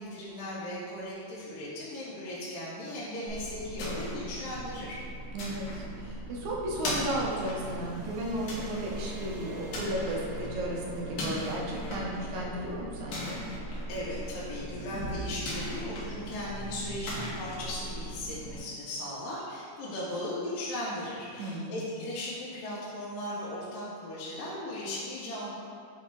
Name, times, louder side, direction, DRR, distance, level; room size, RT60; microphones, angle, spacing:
voice 1, 0.0-5.0 13.9-25.5, left 1 dB, 75° left, -8 dB, 2.4 m, -37 dB
sound 1, 3.3-18.6, equal, 60° left, 2.1 m, -38 dB
voice 2, 5.3-13.4 21.4-21.8, right 1 dB, 75° right, -2 dB, 1.9 m, -34 dB
sound 2, 6.9-18.6, equal, 90° right, 2.7 m, -49 dB
7.0 x 3.1 x 4.6 m, 2.2 s
omnidirectional pair, 4.0 m